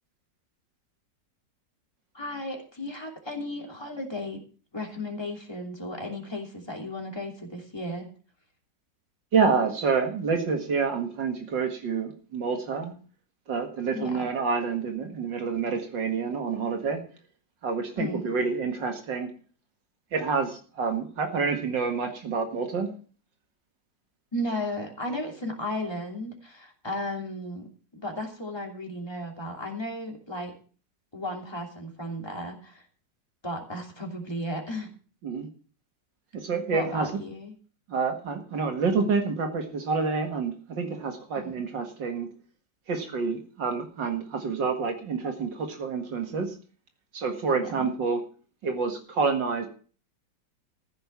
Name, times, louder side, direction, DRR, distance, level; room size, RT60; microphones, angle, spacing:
voice 1, 2.1-4.4 4.7-8.0 13.9-14.3 18.0-18.4 24.3-27.7 27.9-30.5 31.1-32.8 33.4-34.9 36.7-37.5 41.3-41.6 47.5-47.9, left 1 dB, 15° left, 2.9 m, -34 dB
voice 2, 9.3-13.0 13.5-17.1 17.6-19.3 20.1-22.9 35.2-35.5 36.3-37.1 37.9-42.3 42.9-46.6 47.1-48.3 48.6-49.7, right 5 dB, 85° right, 2.5 m, -28 dB
15.0 x 6.7 x 7.0 m
omnidirectional pair, 1.9 m